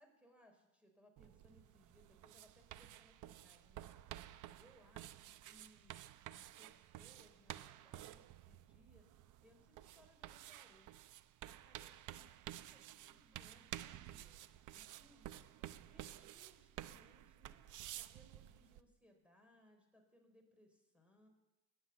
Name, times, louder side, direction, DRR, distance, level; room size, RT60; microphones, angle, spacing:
voice 1, 0.0-3.9 4.6-6.0 6.3-9.1 9.4-10.9 11.4-14.4 14.7-15.3 15.6-17.6 17.9-21.3, equal, 5° right, 3 dB, 3.8 m, -68 dB
sound 1, 1.2-18.8, right 13 dB, 45° right, 0.7 m, -53 dB
19.5 x 8.0 x 8.1 m, 1.0 s
cardioid pair, 125°, 41 cm